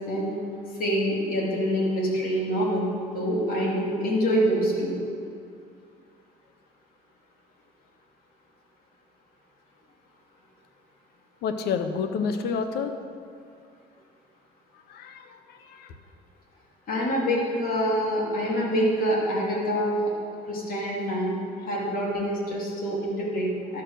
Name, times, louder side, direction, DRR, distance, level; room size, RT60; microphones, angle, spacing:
voice 1, 0.7-2.9 3.1-4.9 16.9-20.1 20.5-21.3 21.7-23.8, equal, 55° left, -4 dB, 2.8 m, -26 dB
voice 2, 11.4-13.0 14.9-15.9, left 5 dB, 75° left, 8 dB, 0.8 m, -29 dB
12.5 x 4.8 x 6.3 m, 2.3 s
cardioid pair, 110°, 17 cm